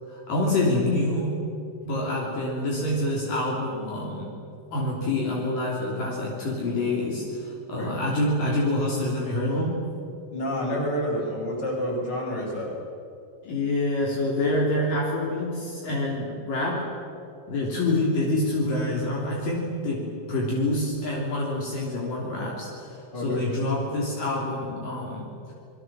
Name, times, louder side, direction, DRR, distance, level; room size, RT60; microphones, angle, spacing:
voice 1, 0.1-1.4 1.8-4.4 4.7-9.8 13.4-16.9 17.5-25.3, left 1 dB, 60° left, -3 dB, 4.8 m, -27 dB
voice 2, 10.3-12.7 23.1-23.5, equal, 25° left, -2 dB, 6.5 m, -29 dB
29.0 x 22.0 x 7.5 m, 2.5 s
omnidirectional pair, 4.5 m